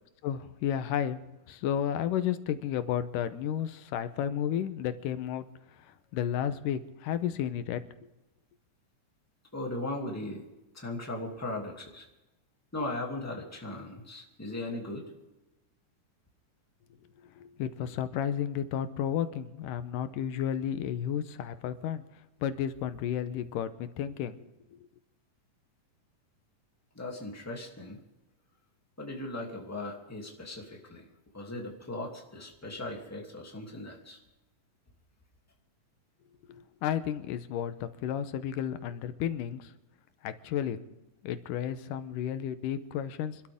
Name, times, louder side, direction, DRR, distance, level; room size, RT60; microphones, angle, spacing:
voice 1, 0.2-1.2 1.5-5.5 6.1-7.8 17.4-22.0 22.4-24.4 24.7-24.8 36.5-39.7 40.2-40.8 41.2-43.4, left 9 dB, 85° left, 11 dB, 2.4 m, -32 dB
voice 2, 9.5-10.4 10.7-12.1 12.7-15.0 26.9-28.0 29.0-31.1 31.3-34.2, left 2 dB, 5° left, -1 dB, 2.1 m, -38 dB
26.0 x 13.0 x 3.6 m, 1.0 s
omnidirectional pair, 3.7 m